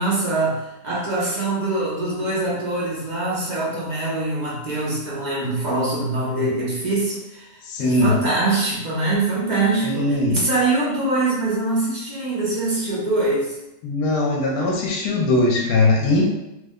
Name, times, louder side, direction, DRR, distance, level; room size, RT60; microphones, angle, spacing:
voice 1, 0.0-13.6, right 2 dB, 45° right, -6 dB, 0.5 m, -23 dB
voice 2, 7.6-8.2 9.8-10.4 13.8-16.3, left 2 dB, 75° left, -1 dB, 1.1 m, -20 dB
3.2 x 2.1 x 3.5 m, 0.91 s
omnidirectional pair, 1.8 m